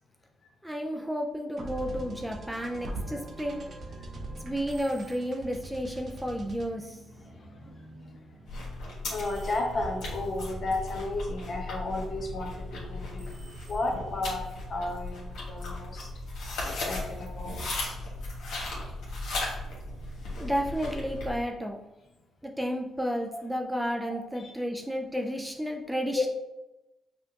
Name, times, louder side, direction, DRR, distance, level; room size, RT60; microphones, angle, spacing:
voice 1, 0.6-3.6 4.4-7.0 20.4-21.8 22.4-26.3, equal, 5° right, 1 dB, 0.4 m, -32 dB
sound 1, 1.6-8.9, right 1 dB, 50° right, 0.8 m, -42 dB
sound 2, 4.6-5.6 9.1-10.1 13.1-14.3, right 3 dB, 90° right, 0.9 m, -57 dB
voice 2, 7.2-7.7 9.1-16.1 16.6-17.6 24.0-24.5 26.1-26.2, left 2 dB, 45° left, 1 dB, 0.9 m, -33 dB
sound 3, 8.5-21.4, left 2 dB, 80° left, 1.3 m, -37 dB
5.5 x 2.4 x 2.8 m, 0.99 s
cardioid pair, 90°, 0 cm